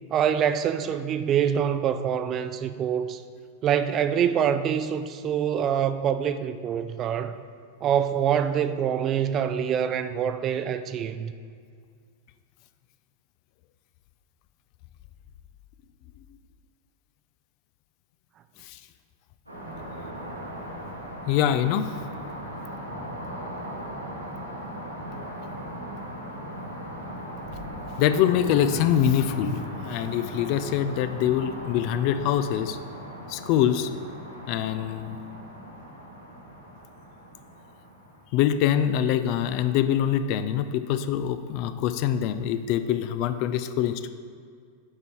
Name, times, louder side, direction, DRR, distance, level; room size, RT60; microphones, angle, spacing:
voice 1, 0.1-3.2 3.6-7.3 7.8-11.3 19.7-19.8, right 8 dB, 30° right, 0.4 m, -25 dB
sound 1, 19.5-38.2, equal, 85° right, 1.5 m, -38 dB
voice 2, 21.3-21.9 28.0-32.8 33.3-33.9 34.5-35.2 38.3-44.1, left 10 dB, 45° left, 0.4 m, -24 dB
8.6 x 5.3 x 4.5 m
figure-of-eight pair, 90°, 0 cm